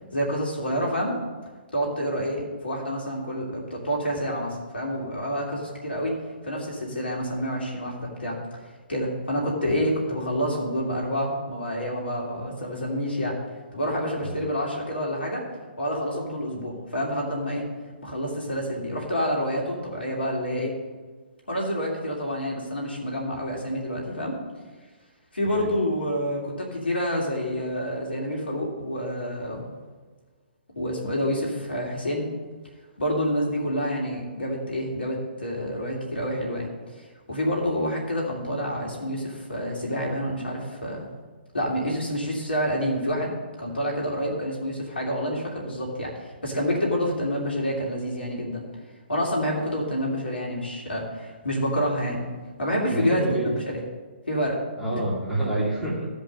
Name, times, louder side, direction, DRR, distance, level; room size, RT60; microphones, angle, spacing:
voice 1, 0.1-1.2 1.7-6.2 6.4-8.4 8.9-13.4 13.7-15.4 15.8-17.7 18.0-20.7 21.5-24.4 25.3-29.7 30.7-32.3 33.0-36.7 37.0-41.1 41.5-48.6 49.1-52.2 52.6-53.6 54.3-54.6, equal, 70° left, -2 dB, 2.8 m, -28 dB
voice 2, 52.9-53.6 54.8-56.1, right 1 dB, 5° right, -7 dB, 2.4 m, -28 dB
16.0 x 5.3 x 5.4 m, 1.4 s
figure-of-eight pair, 125°, 6 cm